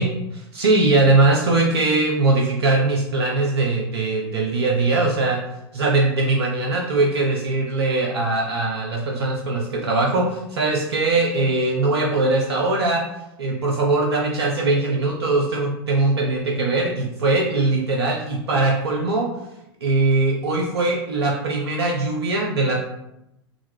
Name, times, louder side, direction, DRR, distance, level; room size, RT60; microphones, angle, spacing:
voice 1, 0.0-5.4 5.7-13.1 13.4-19.3 19.8-22.9, right 2 dB, 75° right, -1 dB, 0.5 m, -21 dB
3.6 x 2.2 x 3.2 m, 0.86 s
figure-of-eight pair, 95°, 13 cm